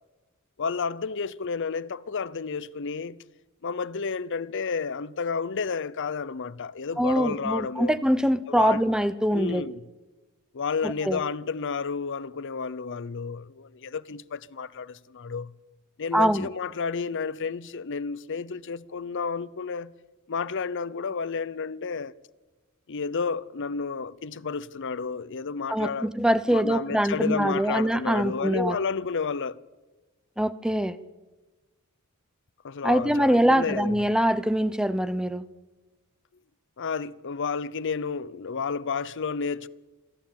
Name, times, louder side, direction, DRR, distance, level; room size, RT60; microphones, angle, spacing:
voice 1, 0.6-3.2 3.6-8.0 8.5-8.9 9.3-9.8 10.5-15.5 16.0-19.9 20.3-22.1 22.9-26.1 26.5-29.6 32.6-34.1 36.8-39.7, left 5 dB, 60° left, 0.7 m, -31 dB
voice 2, 7.0-9.6 10.8-11.2 16.1-16.5 25.7-28.8 30.4-31.0 32.8-35.4, equal, 5° right, 0.7 m, -23 dB
27.5 x 11.5 x 8.7 m
head